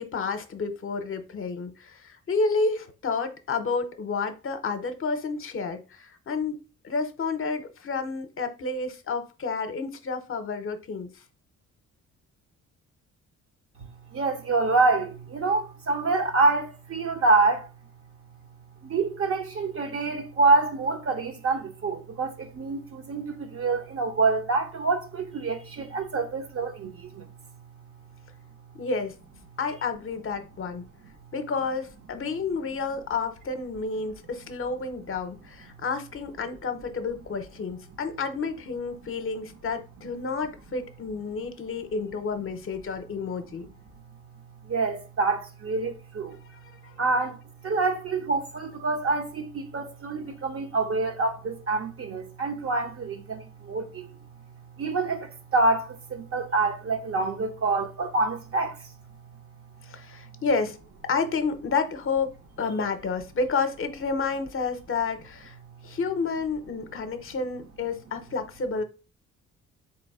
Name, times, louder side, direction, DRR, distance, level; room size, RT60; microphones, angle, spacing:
voice 1, 0.0-6.6 6.8-11.1 28.8-29.1 29.6-30.9 31.3-43.7 46.8-46.9 59.8-60.8 61.1-65.6 65.8-68.8, left 4 dB, 45° left, 0.7 m, -30 dB
voice 2, 14.1-17.7 18.8-27.3 44.6-46.4 47.0-54.1 54.8-58.8, right 3 dB, 50° right, 1.0 m, -26 dB
3.5 x 3.0 x 4.7 m
cardioid pair, 90°, 30 cm